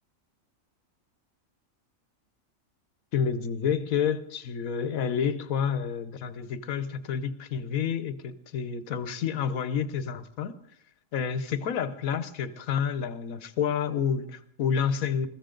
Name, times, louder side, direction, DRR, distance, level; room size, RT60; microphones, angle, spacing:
voice 1, 3.1-10.6 11.1-15.3, left 7 dB, 80° left, 1.3 m, -29 dB
21.0 x 15.5 x 3.8 m
omnidirectional pair, 1.4 m